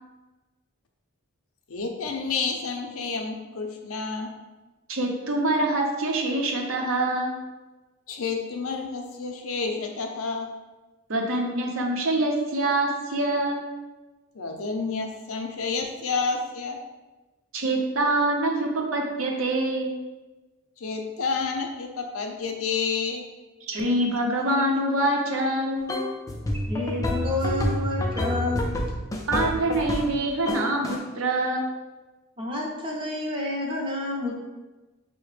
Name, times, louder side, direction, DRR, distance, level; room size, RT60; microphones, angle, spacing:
voice 1, 1.7-4.3 8.1-10.5 14.3-16.8 20.8-23.2, left 4 dB, 70° left, 3 dB, 0.5 m, -29 dB
voice 2, 4.9-7.4 11.1-13.7 17.5-19.9 23.6-25.9 29.3-31.6, right 1 dB, 65° right, 1 dB, 0.7 m, -25 dB
sound 1, 25.9-30.2 30.5-31.0, left 1 dB, 15° left, 0.3 m, -28 dB
voice 3, 26.7-28.6 32.4-34.4, left 2 dB, 25° right, -2 dB, 0.6 m, -29 dB
5.7 x 2.1 x 3.2 m, 1.1 s
head